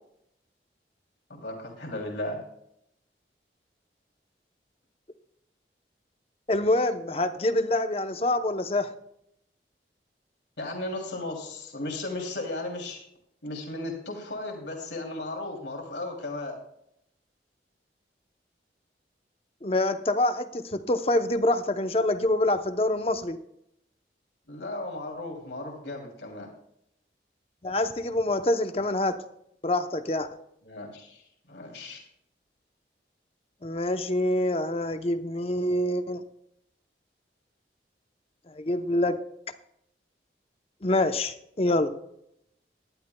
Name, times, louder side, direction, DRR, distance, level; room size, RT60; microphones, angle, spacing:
voice 1, 1.3-2.4 10.6-13.0 13.4-16.5 24.5-26.5 30.6-31.2 31.5-32.0, left 2 dB, 85° left, 1 dB, 2.9 m, -35 dB
voice 2, 6.5-9.0 19.6-23.4 27.6-29.2 29.6-30.3 33.6-36.2 38.5-39.2 40.8-41.9, left 1 dB, 35° left, 8 dB, 0.7 m, -26 dB
18.5 x 11.5 x 2.2 m, 0.75 s
head